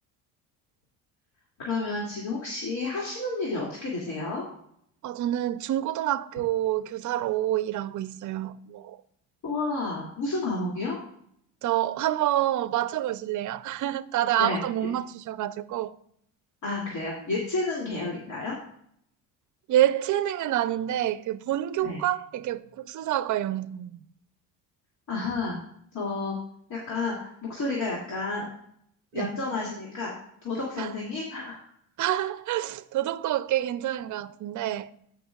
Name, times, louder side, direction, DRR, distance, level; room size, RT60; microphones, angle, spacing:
voice 1, 1.6-4.5 9.4-11.0 14.4-14.6 16.6-18.6 21.8-22.0 25.1-25.6 25.9-26.4 26.7-28.4 29.1-30.1 30.4-31.6, left 3 dB, 50° left, 2.5 m, -30 dB
voice 2, 5.0-9.0 11.6-15.9 19.7-24.0 29.1-29.3 30.8-30.9 32.0-34.9, right 13 dB, 50° right, 0.6 m, -27 dB
15.5 x 6.0 x 2.4 m
cardioid pair, 105°, 37 cm